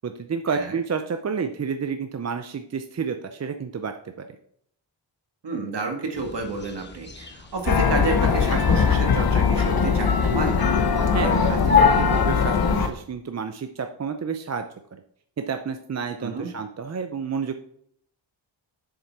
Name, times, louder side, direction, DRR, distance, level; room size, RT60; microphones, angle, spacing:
voice 1, 0.0-4.3 11.1-14.7 14.9-15.0 15.4-17.5, right 6 dB, 35° right, 6 dB, 0.5 m, -30 dB
voice 2, 5.4-10.5 16.2-16.5, right 3 dB, 55° right, 3 dB, 1.9 m, -30 dB
sound 1, 6.1-12.8, left 6 dB, 20° left, 0.9 m, -28 dB
sound 2, 7.7-12.9, left 5 dB, 50° left, 0.9 m, -21 dB
7.7 x 6.9 x 4.6 m, 0.66 s
wide cardioid pair, 145°, 47 cm